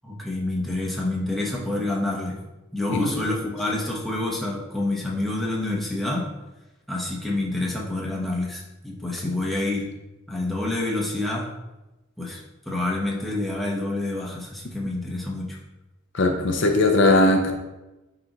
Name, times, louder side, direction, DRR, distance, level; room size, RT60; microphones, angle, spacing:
voice 1, 0.0-2.4 2.7-6.3 6.9-9.9 10.3-11.5 12.2-12.4 12.7-15.6, left 2 dB, ahead, -4 dB, 1.1 m, -28 dB
voice 2, 16.1-17.5, left 2 dB, 60° left, 3 dB, 0.7 m, -19 dB
9.4 x 3.9 x 3.0 m, 1.0 s
head